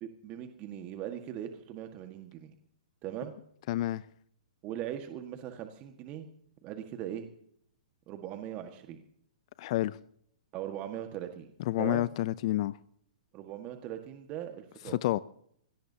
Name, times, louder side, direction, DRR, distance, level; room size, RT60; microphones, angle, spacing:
voice 1, 0.0-2.5 3.0-3.4 4.6-6.3 6.6-7.3 8.1-9.0 10.5-11.5 11.8-12.1 13.3-15.0, right 11 dB, 35° right, 1.7 m, -40 dB
voice 2, 3.7-4.0 9.6-10.0 11.7-12.7 15.0-15.2, left 15 dB, 50° left, 0.5 m, -29 dB
23.5 x 18.0 x 2.9 m
hypercardioid pair, 125°, 4 cm